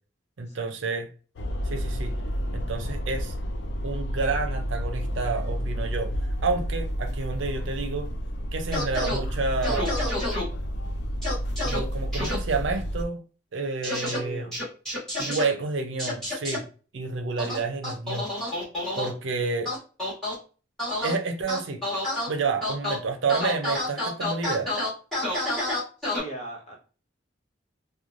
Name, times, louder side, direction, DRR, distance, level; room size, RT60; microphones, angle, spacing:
voice 1, 0.4-1.1 1.6-2.1 2.5-3.3 3.8-6.1 6.4-8.1 8.5-10.1 11.6-13.2 13.5-14.6 15.2-16.6 16.9-18.3 19.0-19.7 21.0-21.8 22.3-24.7, right 4 dB, 80° right, 0.5 m, -29 dB
sound 1, 1.4-13.0, equal, 65° left, 0.4 m, -30 dB
sound 2, 8.7-9.2 9.6-10.4 11.2-11.8 12.1-12.4 13.8-14.2 14.5-15.4 16.0-16.6 17.4-19.1 19.7-20.3 20.8-21.1 21.5-22.3 22.6-23.0 23.3-26.2, left 1 dB, ahead, 1.2 m, -29 dB
voice 2, 13.8-14.6 26.0-26.8, right 1 dB, 35° left, 0.9 m, -40 dB
3.1 x 2.2 x 2.4 m
head